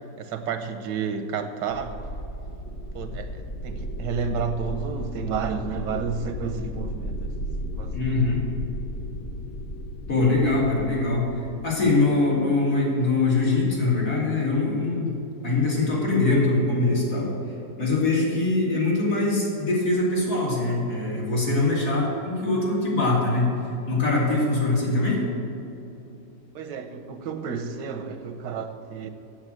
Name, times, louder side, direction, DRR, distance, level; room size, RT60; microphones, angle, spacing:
voice 1, 0.2-2.0 2.9-7.4 7.8-8.3 26.5-29.1, right 6 dB, 85° right, 7 dB, 1.5 m, -31 dB
sound 1, 1.7-12.3, equal, 85° left, 0.5 m, -34 dB
voice 2, 7.9-8.4 10.1-11.3 11.6-15.1 15.4-17.3 17.8-23.6 23.9-25.2, left 2 dB, 60° left, -5 dB, 3.3 m, -23 dB
8.8 x 7.9 x 7.8 m, 2.8 s
omnidirectional pair, 1.8 m